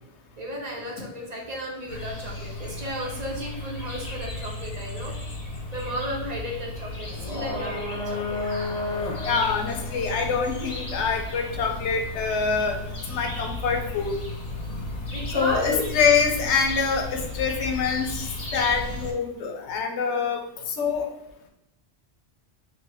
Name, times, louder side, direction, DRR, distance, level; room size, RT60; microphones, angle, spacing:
voice 1, 0.4-5.2 5.7-8.4 15.1-15.9, equal, 45° right, -2 dB, 0.7 m, -34 dB
sound 1, 1.9-19.1, left 2 dB, 40° left, 0.7 m, -33 dB
voice 2, 9.3-12.8 13.1-14.1 15.3-18.3 18.5-20.4 20.8-21.1, left 5 dB, 90° left, 4 dB, 0.9 m, -25 dB
3.1 x 2.6 x 3.4 m, 0.86 s
omnidirectional pair, 1.1 m